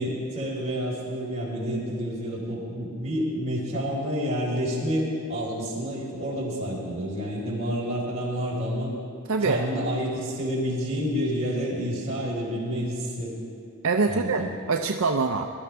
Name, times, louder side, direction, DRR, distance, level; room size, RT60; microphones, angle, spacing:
voice 1, 0.0-8.9 9.4-13.3 14.1-14.5, equal, 30° right, -6 dB, 4.2 m, -29 dB
voice 2, 9.3-9.6 13.8-15.5, right 4 dB, 70° right, 4 dB, 0.5 m, -24 dB
22.0 x 12.0 x 3.4 m, 2.4 s
head